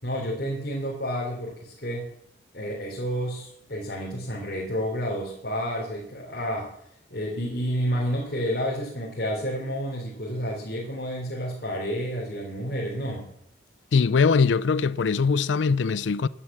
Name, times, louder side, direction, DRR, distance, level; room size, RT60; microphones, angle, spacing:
voice 1, 0.0-2.1 2.5-6.8 7.1-13.3, equal, 55° left, 3.7 m, -30 dB
voice 2, 13.9-16.3, left 5 dB, 80° left, 0.5 m, -21 dB
14.0 x 11.5 x 7.4 m
head